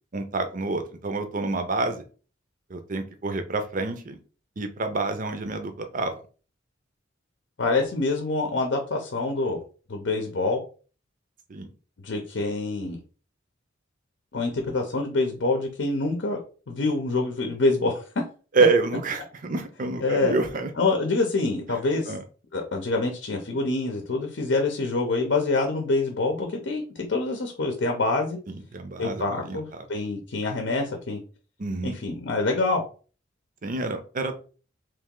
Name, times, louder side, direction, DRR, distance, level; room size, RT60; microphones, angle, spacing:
voice 1, 0.1-2.0 2.7-4.2 4.6-6.2 11.5-11.7 18.5-20.7 22.1-22.2 28.5-29.9 31.6-32.0 33.6-34.4, right 3 dB, 45° right, 7 dB, 0.6 m, -27 dB
voice 2, 7.6-9.6 9.9-10.6 12.0-13.0 14.3-16.4 16.7-18.0 20.0-20.3 20.8-22.1 22.5-28.4 29.0-31.2 31.8-32.8, left 3 dB, 65° left, 3 dB, 0.7 m, -26 dB
3.2 x 2.9 x 3.7 m, 0.38 s
head